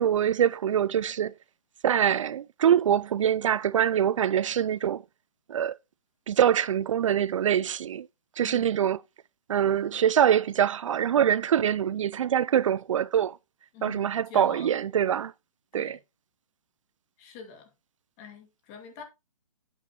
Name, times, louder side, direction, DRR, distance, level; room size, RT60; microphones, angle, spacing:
voice 1, 0.0-1.3 1.8-5.0 5.5-5.8 6.3-8.1 8.4-9.0 9.5-13.4 13.8-15.3 15.7-16.0, right 9 dB, 65° right, 0.4 m, -24 dB
voice 2, 8.4-8.8 13.7-14.8 15.8-16.0 17.2-17.7 18.2-19.0, left 6 dB, 25° left, 2.1 m, -46 dB
8.6 x 8.1 x 2.9 m
hypercardioid pair, 155°, 18 cm